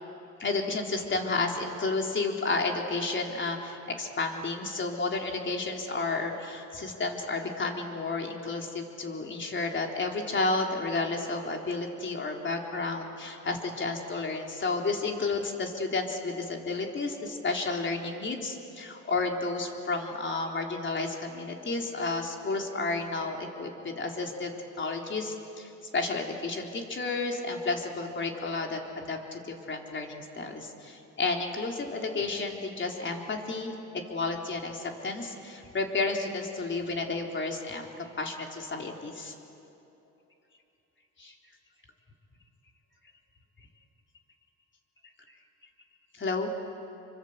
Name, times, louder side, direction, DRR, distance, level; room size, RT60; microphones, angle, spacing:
voice 1, 0.4-33.7 34.1-39.3 41.2-41.3 46.1-46.5, left 3 dB, 40° left, 1 dB, 3.9 m, -32 dB
27.5 x 24.5 x 8.2 m, 2.8 s
cardioid pair, 90°, 30 cm